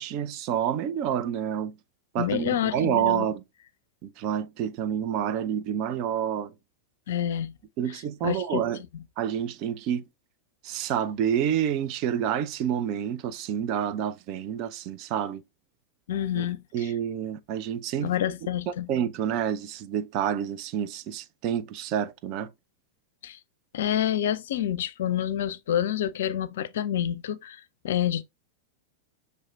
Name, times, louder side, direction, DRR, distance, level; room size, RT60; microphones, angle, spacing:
voice 1, 0.0-1.7 2.1-3.4 4.0-6.5 7.8-8.8 9.2-10.0 10.6-15.4 16.3-16.5 16.7-18.1 18.9-22.5, right 9 dB, 40° right, 0.5 m, -28 dB
voice 2, 2.2-3.3 7.1-7.5 8.2-8.6 16.1-16.9 18.0-18.9 23.2-23.4 23.7-28.2, left 10 dB, 60° left, 0.4 m, -28 dB
6.3 x 3.3 x 2.3 m
figure-of-eight pair, 90°, 0 cm